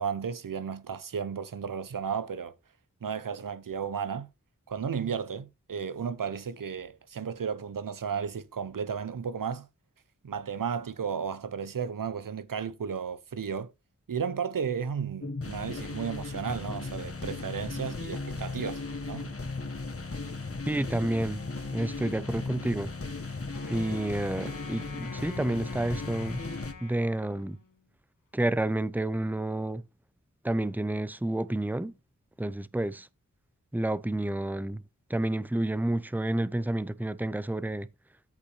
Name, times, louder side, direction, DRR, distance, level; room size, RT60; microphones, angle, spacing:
voice 1, 0.0-2.6 3.0-4.3 4.7-9.7 10.2-13.7 14.1-19.3, right 6 dB, 90° right, 0.8 m, -34 dB
sound 1, 15.2-26.7, left 3 dB, 45° left, 1.5 m, -36 dB
voice 2, 20.7-21.4 21.7-22.9 23.7-26.4 26.8-27.6 28.3-29.8 30.4-31.9 32.4-33.1 33.7-34.8 35.1-37.9, right 1 dB, 5° right, 0.7 m, -30 dB
Wind instrument woodwind instrument, 23.5-27.9, left 5 dB, 85° left, 1.9 m, -47 dB
13.5 x 5.4 x 3.3 m
cardioid pair, 40°, 32 cm